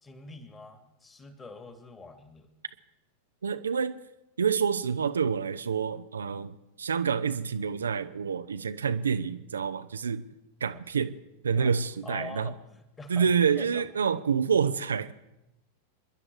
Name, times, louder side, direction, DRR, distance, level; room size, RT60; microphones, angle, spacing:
voice 1, 0.0-2.5 10.7-10.8 11.5-11.8 12.0-13.8, left 3 dB, 15° left, 8 dB, 2.3 m, -45 dB
voice 2, 3.4-4.0 4.4-10.2 10.6-11.1 11.4-12.5 13.1-15.1, right 6 dB, 70° right, 11 dB, 0.6 m, -27 dB
27.5 x 11.0 x 4.7 m, 0.93 s
figure-of-eight pair, 90°, 0 cm